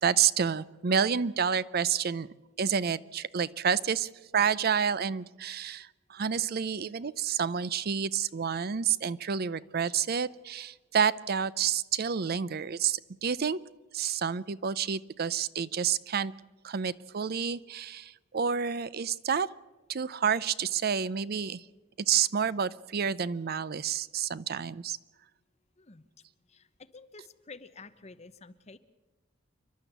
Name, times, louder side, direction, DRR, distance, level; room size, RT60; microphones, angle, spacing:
voice 1, 0.0-2.3 2.6-13.6 13.9-16.3 16.6-19.5 19.9-21.6 22.0-25.0, right 7 dB, 55° right, 19 dB, 0.6 m, -29 dB
voice 2, 26.5-28.8, left 4 dB, 35° left, 11 dB, 1.0 m, -50 dB
28.5 x 11.5 x 8.0 m, 1.2 s
head